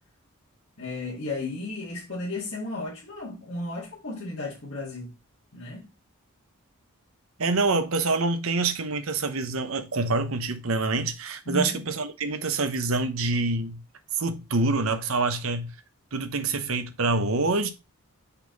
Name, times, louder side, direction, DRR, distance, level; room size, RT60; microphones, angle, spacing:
voice 1, 0.8-5.2 5.5-5.9 11.5-11.8, left 2 dB, 60° left, 1.9 m, -34 dB
voice 2, 7.4-13.8 14.2-15.7 16.1-17.7, right 3 dB, 65° right, 0.9 m, -26 dB
5.7 x 4.1 x 4.0 m
head